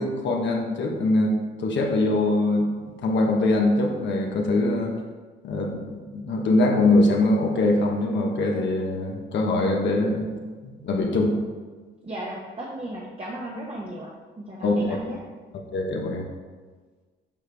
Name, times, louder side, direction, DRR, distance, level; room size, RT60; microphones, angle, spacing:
voice 1, 0.0-1.4 1.6-5.0 5.4-10.3 10.6-11.3 14.6-15.0 15.5-16.3, left 2 dB, 65° left, 1 dB, 1.1 m, -23 dB
voice 2, 12.0-14.1 14.4-15.2, right 1 dB, 30° right, -4 dB, 1.1 m, -35 dB
7.4 x 4.7 x 3.4 m, 1.4 s
cardioid pair, 90°, 20 cm